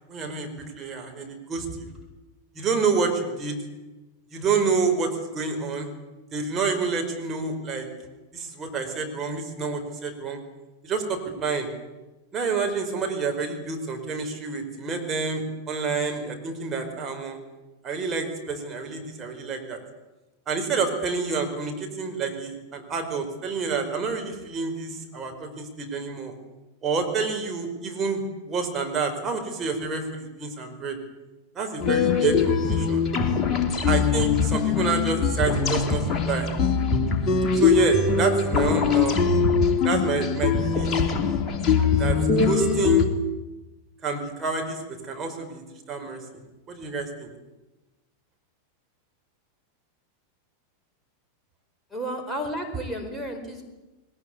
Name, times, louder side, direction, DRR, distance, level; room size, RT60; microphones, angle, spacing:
voice 1, 0.1-1.9 2.5-3.6 4.3-5.9 6.3-7.9 8.3-10.4 10.8-11.7 12.3-17.4 17.8-19.8 20.5-26.3 26.8-31.0 31.5-33.1 33.9-36.5 37.5-39.2 39.8-40.9 42.0-43.1 44.0-46.2 46.7-47.3, right 4 dB, 25° right, 3 dB, 5.0 m, -28 dB
sound 1, 31.8-43.0, left 5 dB, 25° left, 2.8 m, -22 dB
voice 2, 51.9-53.7, right 1 dB, ahead, 1 dB, 4.4 m, -32 dB
20.5 x 20.0 x 9.6 m, 1.1 s
figure-of-eight pair, 90°, 0 cm